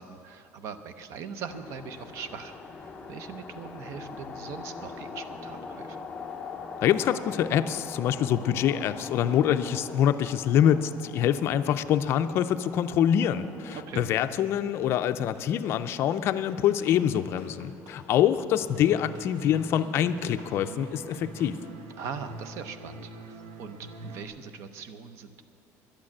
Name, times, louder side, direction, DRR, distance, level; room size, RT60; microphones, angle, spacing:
voice 1, 0.0-2.5 2.8-6.0 13.7-14.1 22.0-25.4, right 6 dB, 50° right, 11 dB, 0.7 m, -41 dB
sound 1, 1.5-14.3, left 4 dB, 15° left, 0.7 m, -42 dB
voice 2, 6.8-21.6, left 10 dB, 40° left, 10 dB, 0.4 m, -25 dB
sound 2, 15.3-15.9 16.3-21.6, equal, 70° right, 3.0 m, -53 dB
sound 3, 18.7-24.2, right 2 dB, 85° right, 1.0 m, -44 dB
11.5 x 8.9 x 8.5 m, 2.6 s
cardioid pair, 175°, 6 cm